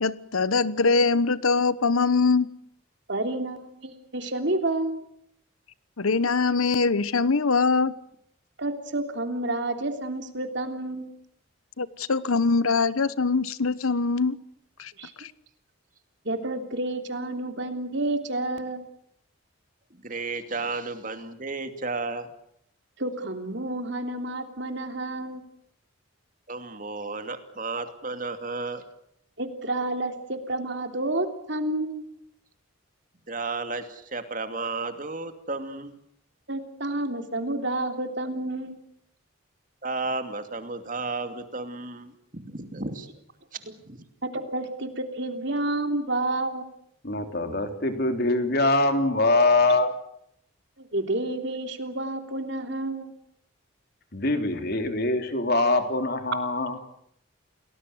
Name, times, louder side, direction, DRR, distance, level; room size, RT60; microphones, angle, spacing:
voice 1, 0.0-2.5 6.0-7.9 11.8-14.4 14.8-14.9 15.2-15.3, left 4 dB, 90° left, 1.2 m, -23 dB
voice 2, 3.1-5.0 8.6-11.1 15.0-15.1 16.3-18.9 23.0-25.4 29.4-32.0 36.5-38.8 44.2-46.7 50.8-53.1, right 2 dB, 55° right, 3.4 m, -30 dB
voice 3, 19.9-22.3 26.5-28.8 33.3-36.0 39.8-43.1 43.5-44.0, right 3 dB, 40° right, 2.7 m, -33 dB
voice 4, 47.0-49.9 54.1-56.8, left 2 dB, 50° left, 3.5 m, -23 dB
29.5 x 19.5 x 8.0 m
head